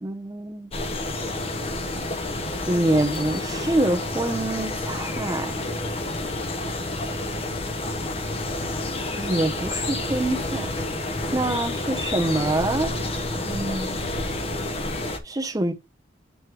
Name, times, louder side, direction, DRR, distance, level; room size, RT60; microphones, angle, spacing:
voice 1, 0.0-0.7 2.7-5.6 9.2-10.7 11.3-13.0 13.3-13.9 15.2-15.7, right 1 dB, 20° right, 0.8 m, -25 dB
sound 1, 0.7-15.2, left 2 dB, 35° left, 1.0 m, -29 dB
7.9 x 3.1 x 4.7 m
head